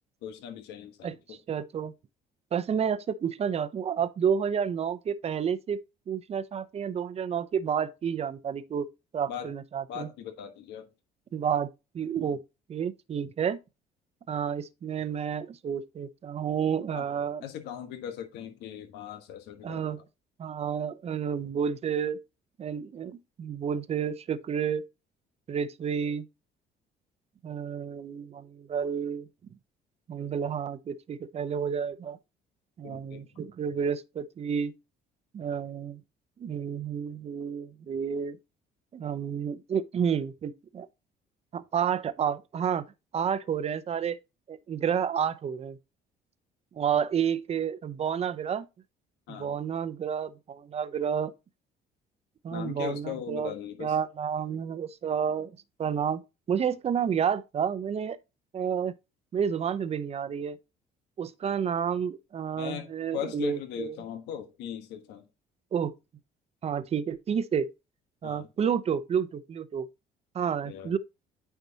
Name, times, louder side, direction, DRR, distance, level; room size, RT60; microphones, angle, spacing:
voice 1, 0.2-1.4 9.3-9.5 9.9-10.9 16.9-19.9 32.8-33.3 49.3-49.6 52.5-54.0 62.6-65.2 68.2-68.5 70.6-70.9, left 9 dB, 90° left, 1.3 m, -39 dB
voice 2, 1.0-1.9 2.5-5.8 6.1-8.9 9.1-10.1 11.3-11.7 11.9-12.4 12.7-13.6 14.3-17.4 19.6-20.0 20.4-22.2 22.6-24.8 25.5-26.2 27.4-29.3 30.1-32.2 32.8-34.7 35.3-36.0 36.4-38.4 38.9-40.9 41.5-42.8 43.1-44.2 44.5-45.8 46.7-48.7 49.3-51.3 52.4-53.5 53.8-55.5 55.8-56.2 56.5-58.2 58.5-58.9 59.3-60.6 61.2-64.0 65.7-65.9 66.6-67.7 68.2-69.9 70.3-71.0, right 7 dB, 40° right, 0.7 m, -30 dB
9.1 x 4.7 x 2.8 m
cardioid pair, 110°, 17 cm